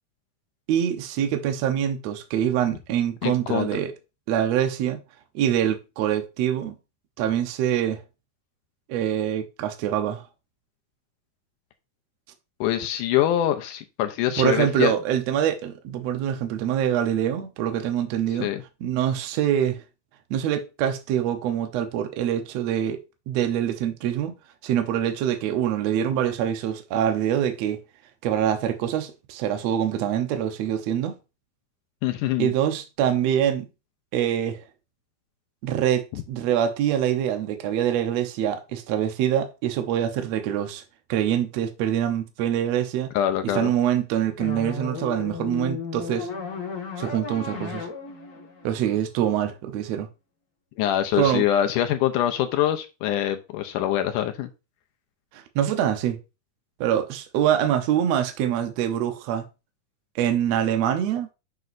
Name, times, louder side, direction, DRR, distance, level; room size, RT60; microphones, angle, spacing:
voice 1, 0.7-3.9 4.3-5.0 5.4-6.8 7.2-8.0 8.9-10.2 14.4-18.5 18.8-19.8 20.3-23.0 23.3-24.3 24.6-27.8 28.2-31.2 32.4-33.7 34.1-34.6 35.6-40.8 41.1-43.1 43.5-46.3 47.0-47.9 48.6-50.1 51.2-51.5 55.3-56.2 56.8-59.5 60.2-61.3, right 10 dB, 70° right, 1.6 m, -24 dB
voice 2, 3.2-3.7 12.6-14.9 18.4-18.6 32.0-32.5 36.1-36.2 43.1-43.7 50.8-54.5, left 11 dB, 80° left, 2.0 m, -24 dB
sound 1, 44.4-49.5, left 5 dB, 50° left, 0.9 m, -35 dB
7.8 x 6.2 x 2.6 m
omnidirectional pair, 4.2 m